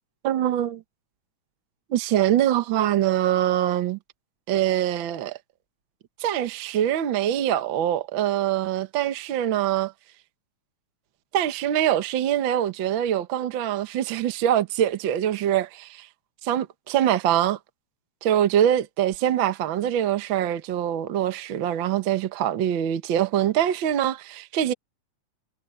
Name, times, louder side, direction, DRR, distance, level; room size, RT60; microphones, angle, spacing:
voice 1, 0.2-0.8 1.9-4.0 4.5-5.4 6.2-9.9 11.3-16.1 16.4-17.6 18.2-24.7, right 11 dB, 55° right, 1.5 m, -24 dB
omnidirectional pair, 3.3 m